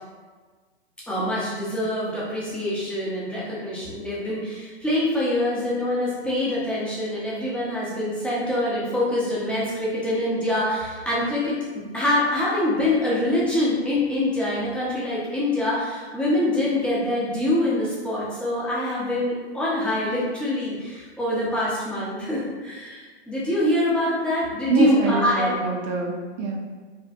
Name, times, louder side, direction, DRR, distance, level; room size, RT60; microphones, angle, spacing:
voice 1, 1.1-25.5, left 1 dB, 5° left, -8 dB, 0.7 m, -25 dB
voice 2, 24.7-26.5, right 3 dB, 40° right, 0 dB, 0.7 m, -23 dB
4.3 x 2.1 x 2.5 m, 1.4 s
hypercardioid pair, 125°, 34 cm